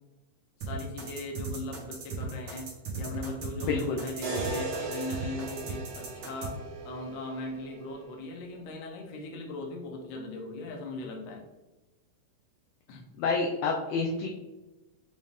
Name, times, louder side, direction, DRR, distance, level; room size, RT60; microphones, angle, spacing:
voice 1, 0.6-6.6 6.8-11.4 12.9-13.0, left 2 dB, 70° left, 1 dB, 1.7 m, -39 dB
sound 1, 0.6-6.5, right 4 dB, 55° right, 1.6 m, -37 dB
voice 2, 3.6-4.0 13.2-14.3, left 4 dB, 85° left, 1 dB, 1.4 m, -28 dB
sound 2, 4.2-8.3, right 3 dB, 80° right, 1.0 m, -38 dB
6.1 x 2.5 x 3.4 m, 1.1 s
omnidirectional pair, 3.4 m